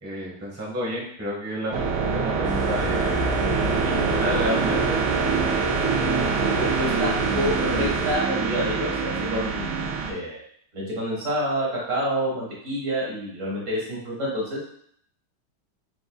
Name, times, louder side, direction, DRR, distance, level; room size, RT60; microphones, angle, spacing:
voice 1, 0.0-3.2 3.7-5.0, equal, 15° right, -5 dB, 0.4 m, -31 dB
sound 1, 1.7-10.1, right 5 dB, 85° right, 1.5 m, -25 dB
sound 2, 2.4-8.2, equal, 45° left, 1.8 m, -32 dB
voice 2, 6.5-10.4 10.7-14.6, equal, 40° right, -5 dB, 1.7 m, -28 dB
4.7 x 3.8 x 2.3 m, 0.66 s
omnidirectional pair, 2.3 m